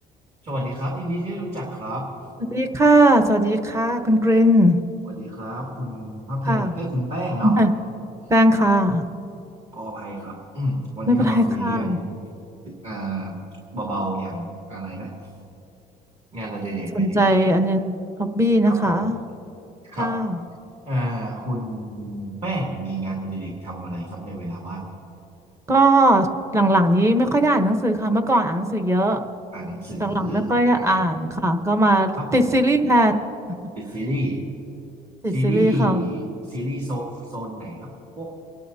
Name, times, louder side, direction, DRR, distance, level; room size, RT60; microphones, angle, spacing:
voice 1, 0.4-2.1 5.1-7.5 9.7-12.1 12.6-13.3 13.7-15.3 16.3-17.5 18.7-19.1 19.8-20.1 20.9-24.8 29.5-30.5 30.7-31.1 32.2-32.5 33.7-34.4 35.3-37.9 38.2-38.3, right 1 dB, 40° right, -3 dB, 2.6 m, -29 dB
voice 2, 2.5-4.8 6.4-6.7 7.4-7.7 8.3-9.0 11.1-12.0 16.9-19.2 20.0-20.4 25.7-26.3 26.5-29.2 30.0-33.1 35.2-36.0, right 1 dB, 15° right, 6 dB, 1.1 m, -19 dB
29.5 x 11.5 x 2.8 m, 2.8 s
cardioid pair, 110°, 17 cm